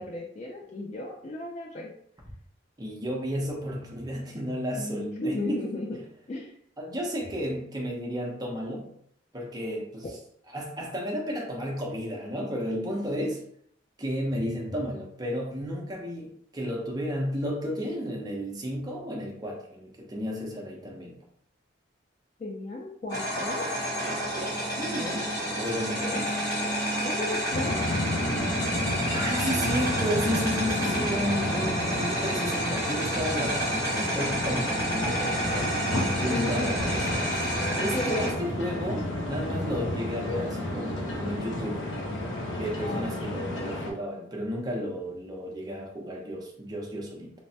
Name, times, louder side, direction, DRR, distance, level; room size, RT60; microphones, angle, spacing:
voice 1, 0.0-1.9 4.8-6.0 6.3-6.5 22.4-23.6 27.0-27.8 34.2-34.5 36.3-36.7 37.9-38.3 42.8-43.3, left 2 dB, 35° left, -1 dB, 0.3 m, -34 dB
voice 2, 2.8-5.6 6.8-8.9 9.3-10.1 10.5-13.4 14.0-21.2 24.7-25.3 25.6-26.4 28.9-35.7 36.2-37.3 37.8-41.8 42.5-47.3, equal, 20° right, -2 dB, 0.6 m, -33 dB
sound 1, 23.1-38.3, right 1 dB, 20° left, 1.0 m, -30 dB
sound 2, 27.5-43.9, left 1 dB, 85° left, 0.6 m, -31 dB
3.2 x 2.1 x 2.7 m, 0.65 s
head